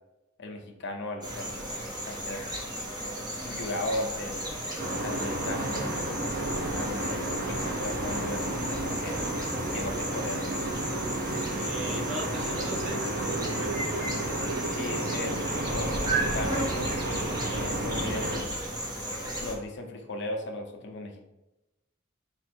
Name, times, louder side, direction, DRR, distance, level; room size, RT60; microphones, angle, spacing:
voice 1, 0.4-1.6 2.0-2.5 3.4-4.5 5.0-6.1 6.8-9.2 9.7-10.5 14.7-15.4 15.7-17.1 17.5-18.5 19.4-21.3, left 2 dB, 60° left, 3 dB, 0.6 m, -37 dB
sound 1, 1.2-19.5, right 1 dB, 20° right, 0.9 m, -34 dB
sound 2, 4.8-18.4, right 1 dB, 50° right, 0.6 m, -32 dB
voice 2, 11.5-14.1, equal, 70° right, -1 dB, 1.1 m, -38 dB
4.4 x 2.5 x 4.4 m, 0.96 s
head